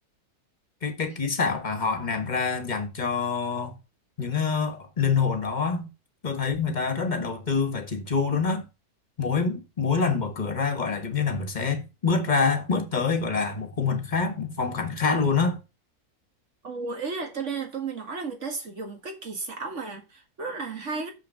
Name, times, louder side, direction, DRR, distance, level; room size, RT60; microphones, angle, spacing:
voice 1, 0.8-3.8 4.2-5.9 6.2-8.6 9.2-15.6, left 5 dB, 30° left, 1.6 m, -26 dB
voice 2, 16.6-21.1, right 4 dB, 50° right, 2.1 m, -33 dB
6.5 x 5.8 x 6.5 m
omnidirectional pair, 1.6 m